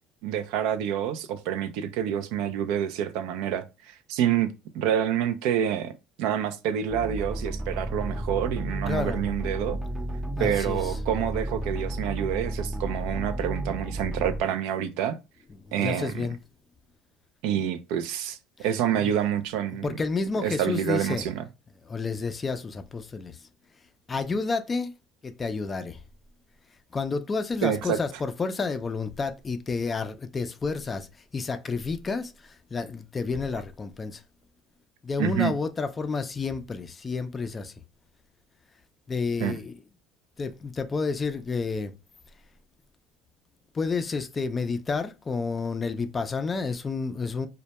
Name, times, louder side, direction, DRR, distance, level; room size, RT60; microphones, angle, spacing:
voice 1, 0.2-5.9 6.2-9.8 10.4-15.2 15.7-16.2 17.4-19.9 20.4-21.4 27.6-28.0 35.2-35.5 39.4-39.5, right 10 dB, 75° right, 0.3 m, -27 dB
sound 1, 6.9-14.4, right 1 dB, 15° right, 0.6 m, -32 dB
voice 2, 8.9-9.2 10.4-11.0 15.6-16.4 18.6-18.7 19.0-19.1 19.8-21.3 21.8-23.5 24.1-24.9 25.2-26.0 26.9-31.1 31.3-34.2 35.0-37.7 39.1-39.7 40.4-41.9 43.7-47.5, left 4 dB, 25° left, 0.3 m, -30 dB
2.1 x 2.1 x 2.8 m
supercardioid pair, 100°, 0 cm